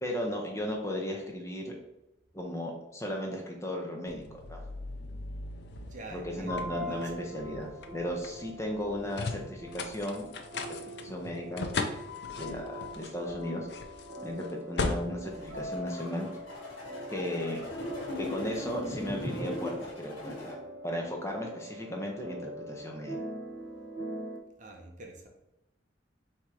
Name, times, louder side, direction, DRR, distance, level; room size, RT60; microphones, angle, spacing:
voice 1, 0.0-1.7 2.3-4.2 4.5-4.6 5.0-5.2 6.1-10.3 10.5-11.6 11.9-12.0 12.4-13.7 14.2-16.3 17.1-17.6 18.2-20.6 20.8-23.2, equal, 15° left, 0 dB, 0.6 m, -36 dB
sound 1, 4.1-16.4, left 3 dB, 60° left, 0.4 m, -39 dB
voice 2, 5.9-7.2 17.6-18.0 24.6-25.3, right 2 dB, 40° right, 1 dB, 0.6 m, -47 dB
sound 2, 6.3-24.4, right 1 dB, 60° right, 1.1 m, -43 dB
sound 3, 15.3-20.5, left 1 dB, 85° left, 1.4 m, -38 dB
3.6 x 2.8 x 4.6 m, 0.92 s
head